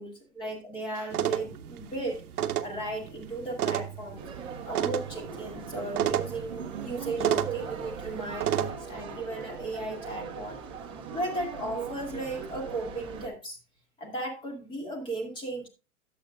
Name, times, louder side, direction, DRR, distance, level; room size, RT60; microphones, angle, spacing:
voice 1, 0.0-2.2 2.6-4.2 4.6-10.6 11.1-13.6 14.0-15.7, right 2 dB, 10° left, 3 dB, 1.4 m, -36 dB
sound 1, 1.1-8.7, right 10 dB, 85° right, 0.9 m, -32 dB
sound 2, 4.2-13.3, right 6 dB, 10° right, 1.0 m, -40 dB
11.0 x 7.8 x 2.4 m, 0.31 s
hypercardioid pair, 165°, 44 cm